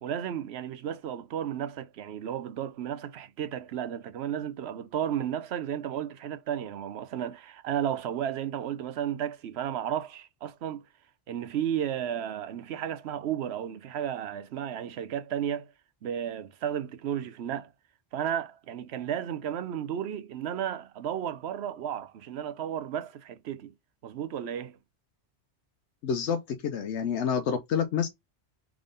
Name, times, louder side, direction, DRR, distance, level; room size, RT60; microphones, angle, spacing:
voice 1, 0.0-10.8 11.3-15.7 16.0-17.7 18.1-23.7 24.0-24.8, right 9 dB, 70° right, 0.9 m, -33 dB
voice 2, 26.0-28.1, left 7 dB, 80° left, 0.9 m, -28 dB
3.6 x 3.6 x 3.8 m
omnidirectional pair, 1.2 m